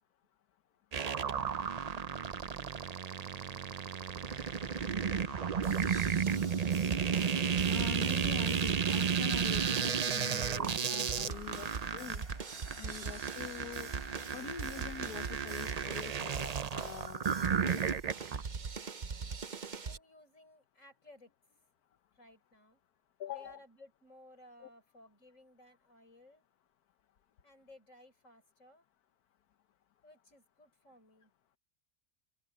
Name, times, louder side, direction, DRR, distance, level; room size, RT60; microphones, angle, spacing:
sound 1, 0.9-18.4, right 7 dB, 65° right, 0.3 m, -33 dB
sound 2, 4.3-16.6, left 1 dB, 40° left, 7.8 m, -54 dB
sound 3, 5.6-20.0, right 5 dB, 40° right, 0.8 m, -43 dB
voice 1, 7.7-12.2 12.7-13.9 14.3-17.8 23.2-23.6 24.6-24.7, left 10 dB, 85° left, 1.5 m, -45 dB
voice 2, 19.8-21.3 22.1-22.8 23.3-26.4 27.4-28.9 30.0-31.3, left 1 dB, 55° left, 7.1 m, -59 dB
omnidirectional pair, 1.6 m